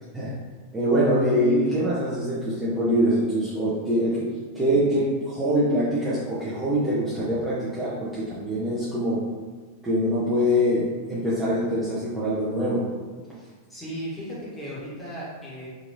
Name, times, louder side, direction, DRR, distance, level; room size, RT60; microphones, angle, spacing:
voice 1, 0.7-4.3 4.5-9.2 9.8-12.8, equal, 10° right, -10 dB, 0.7 m, -24 dB
voice 2, 13.3-15.7, equal, 10° left, -8 dB, 1.4 m, -36 dB
3.9 x 2.8 x 2.6 m, 1.4 s
figure-of-eight pair, 90°, 0 cm